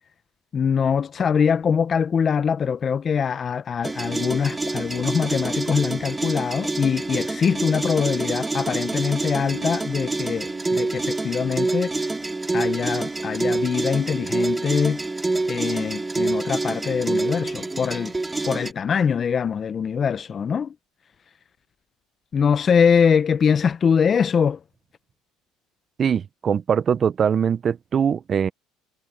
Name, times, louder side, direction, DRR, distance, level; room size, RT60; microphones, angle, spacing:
voice 1, 0.5-11.9 12.5-15.0 15.5-18.1 18.5-20.7 22.3-24.6, left 6 dB, 35° left, 0.6 m, -23 dB
sound 1, 3.8-18.7, right 2 dB, 15° right, 3.4 m, -27 dB
Keyboard (musical), 9.3-12.0, right 15 dB, 60° right, 4.6 m, -46 dB
voice 2, 26.0-28.5, right 7 dB, 35° right, 0.6 m, -22 dB
supercardioid pair, 105°, 0 cm